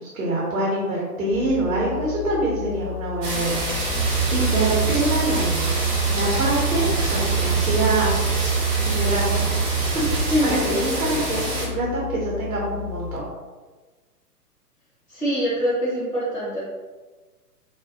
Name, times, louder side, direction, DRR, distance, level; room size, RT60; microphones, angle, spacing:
voice 1, 0.0-5.6 6.1-6.8 7.1-8.1 8.8-13.2, right 1 dB, 55° right, -5 dB, 0.8 m, -25 dB
sound 1, 1.3-13.2, left 12 dB, 75° left, 0.6 m, -34 dB
sound 2, 3.2-11.7, right 2 dB, 35° right, 0.9 m, -27 dB
sound 3, 3.9-10.4, right 9 dB, 80° right, 0.9 m, -25 dB
voice 2, 10.3-10.8 15.1-16.6, equal, ahead, -11 dB, 0.5 m, -24 dB
2.4 x 2.2 x 2.6 m, 1.3 s
figure-of-eight pair, 115°, 47 cm